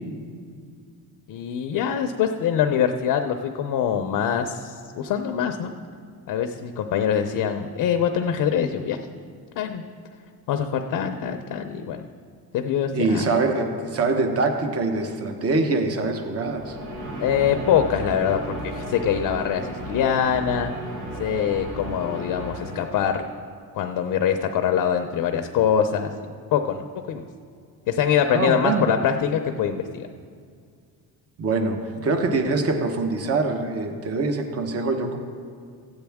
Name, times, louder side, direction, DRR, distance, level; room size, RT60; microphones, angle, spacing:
voice 1, 1.3-5.7 6.3-9.0 9.6-9.8 10.5-12.0 12.5-13.3 17.2-20.7 21.2-23.2 23.7-26.1 26.5-27.2 27.9-30.1, left 8 dB, 55° left, 6 dB, 0.6 m, -24 dB
voice 2, 12.9-16.8 28.3-28.9 31.4-35.2, right 3 dB, 35° right, 5 dB, 1.0 m, -24 dB
sound 1, 16.4-23.3, right 1 dB, 80° right, 3.3 m, -34 dB
15.5 x 8.8 x 3.5 m, 2.2 s
cardioid pair, 130°, 39 cm